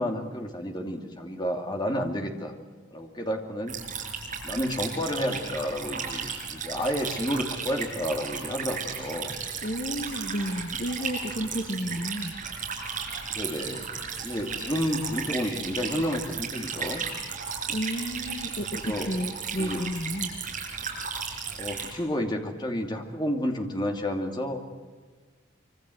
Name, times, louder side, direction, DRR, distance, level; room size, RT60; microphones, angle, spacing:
voice 1, 0.0-2.5 2.9-3.7 4.4-9.3 13.3-13.9 14.2-17.0 18.7-19.1 19.6-19.8 21.5-24.6, equal, 20° left, 3 dB, 2.6 m, -30 dB
sound 1, 3.7-21.9, right 6 dB, 40° right, 6.1 m, -35 dB
voice 2, 9.6-12.3 17.7-20.3, equal, 45° left, 5 dB, 1.5 m, -32 dB
25.5 x 24.5 x 7.9 m, 1.4 s
head